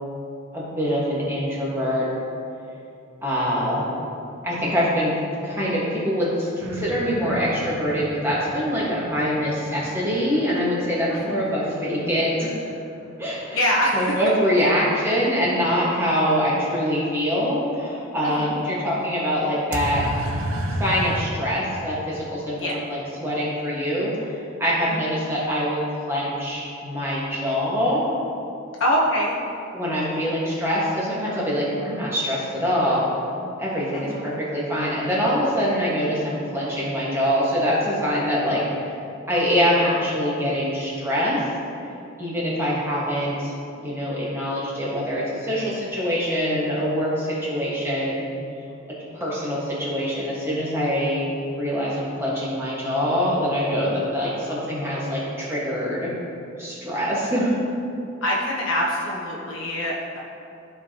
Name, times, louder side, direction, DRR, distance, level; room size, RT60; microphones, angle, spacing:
voice 1, 0.5-2.1 3.2-3.9 4.4-5.1 5.4-12.6 13.2-13.6 13.9-20.0 20.8-25.8 26.1-28.0 29.7-33.1 33.6-38.9 39.3-41.4 42.2-43.5 43.8-48.2 48.9-56.1 56.6-57.6, equal, 10° right, -7 dB, 1.6 m, -24 dB
sound 1, 6.6-12.4 19.7-21.3, right 1 dB, 90° right, 0.8 m, -33 dB
voice 2, 11.1-11.4 13.5-14.2 18.2-18.5 22.6-22.7 24.8-25.0 28.8-29.4 33.9-34.3 58.2-60.2, equal, 75° left, -4 dB, 1.1 m, -24 dB
14.0 x 4.8 x 2.9 m, 2.6 s
head